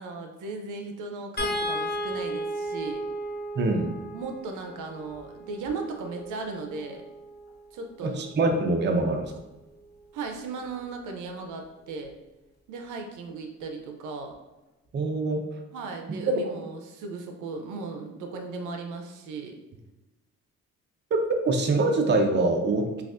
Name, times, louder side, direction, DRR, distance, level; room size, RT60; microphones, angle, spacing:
voice 1, 0.0-3.0 4.1-7.0 7.7-8.3 10.1-12.1 12.7-14.4 15.7-19.6, right 4 dB, 80° right, 4 dB, 0.6 m, -36 dB
sound 1, 1.4-7.7 9.2-9.4 9.7-9.9, equal, 35° left, 0.9 m, -35 dB
voice 2, 3.6-3.9 8.0-9.3 14.9-15.4 21.4-23.0, right 2 dB, 35° right, 4 dB, 0.6 m, -24 dB
5.7 x 2.4 x 2.5 m, 1.0 s
cardioid pair, 90°, 30 cm